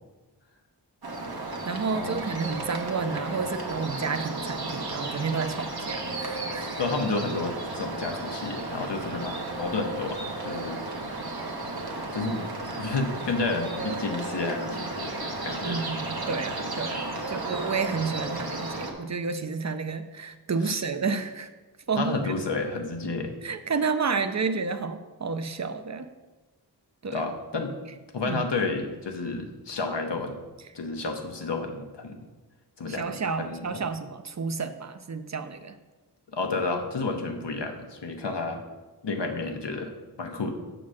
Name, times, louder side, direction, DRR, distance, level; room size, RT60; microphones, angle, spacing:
sound 1, 1.0-18.9, right 2 dB, 65° right, 1.1 m, -34 dB
voice 1, 1.6-6.8 15.6-21.5 21.9-22.3 23.4-26.1 27.0-27.3 28.2-28.4 32.9-35.8, right 5 dB, 45° right, 10 dB, 0.6 m, -31 dB
voice 2, 6.8-10.8 12.1-15.8 20.6-20.8 22.0-23.3 27.1-27.8 28.1-30.4 30.7-32.2 32.8-33.8 36.3-38.6 39.0-40.5, left 3 dB, 90° left, 4 dB, 0.9 m, -31 dB
7.3 x 3.9 x 6.3 m, 1.2 s
wide cardioid pair, 40°, 41 cm